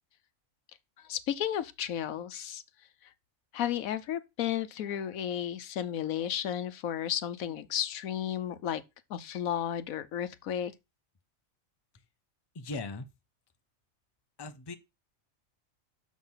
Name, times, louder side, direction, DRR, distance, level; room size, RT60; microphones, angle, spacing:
voice 1, 1.0-2.6 3.5-8.8 9.1-10.7, left 10 dB, 80° left, 1.2 m, -33 dB
voice 2, 12.5-13.1 14.4-14.7, left 3 dB, 25° left, 0.7 m, -38 dB
6.4 x 6.2 x 5.6 m
omnidirectional pair, 1.4 m